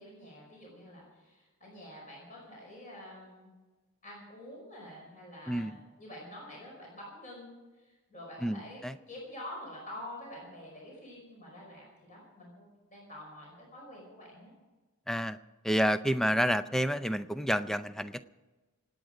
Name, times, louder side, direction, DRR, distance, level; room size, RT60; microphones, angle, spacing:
voice 1, 0.0-3.5 4.0-14.5, left 1 dB, 35° left, -3 dB, 5.3 m, -47 dB
voice 2, 8.4-8.9 15.1-15.4 15.6-18.2, equal, ahead, 12 dB, 0.4 m, -29 dB
26.5 x 9.2 x 5.0 m, 1.2 s
head